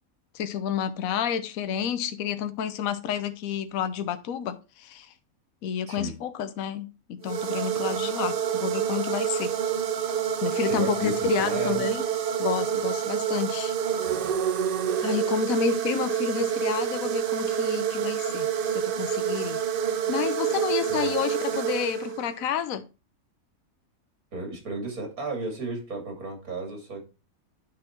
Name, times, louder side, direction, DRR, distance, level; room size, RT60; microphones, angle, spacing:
voice 1, 0.3-5.1 5.6-9.5 10.4-12.0 12.4-13.8 15.0-19.6 20.1-22.8, left 8 dB, 75° left, 1.1 m, -30 dB
sound 1, 7.2-22.4, right 8 dB, 55° right, 0.6 m, -28 dB
voice 2, 10.7-11.9 14.1-14.4 20.9-21.1 24.3-27.0, right 3 dB, 85° right, 2.9 m, -34 dB
9.6 x 4.1 x 4.3 m
omnidirectional pair, 1.5 m